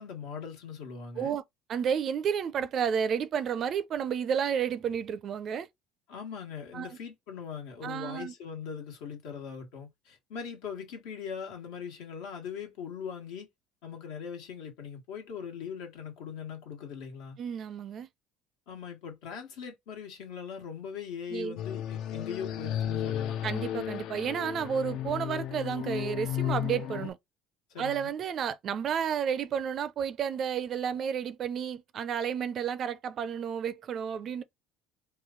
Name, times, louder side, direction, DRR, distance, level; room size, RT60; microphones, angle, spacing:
voice 1, 0.0-1.4 6.1-13.5 13.8-17.4 18.7-23.4 27.7-28.1, left 7 dB, 80° left, 1.4 m, -40 dB
voice 2, 1.7-5.7 6.7-7.0 7.8-8.3 17.4-18.1 21.3-21.6 23.4-27.2 27.8-34.4, right 7 dB, 45° right, 0.4 m, -31 dB
sound 1, 21.6-27.1, left 11 dB, 60° left, 0.4 m, -34 dB
3.0 x 2.3 x 3.7 m
cardioid pair, 120°, 0 cm